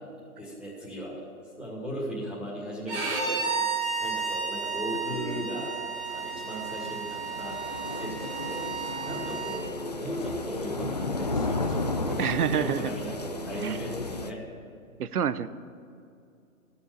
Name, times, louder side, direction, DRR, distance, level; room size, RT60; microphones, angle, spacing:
voice 1, 0.4-1.2 1.6-5.8 6.1-14.4, equal, ahead, -6 dB, 2.3 m, -37 dB
Bowed string instrument, 2.9-9.6, right 5 dB, 20° right, 1.4 m, -32 dB
voice 2, 5.1-5.5 12.2-12.9 13.5-13.8 15.0-15.5, right 8 dB, 85° right, 14 dB, 0.8 m, -28 dB
sound 1, 5.4-14.3, left 2 dB, 30° left, 0.4 m, -34 dB
14.0 x 7.2 x 9.9 m, 2.5 s
hypercardioid pair, 155°, 43 cm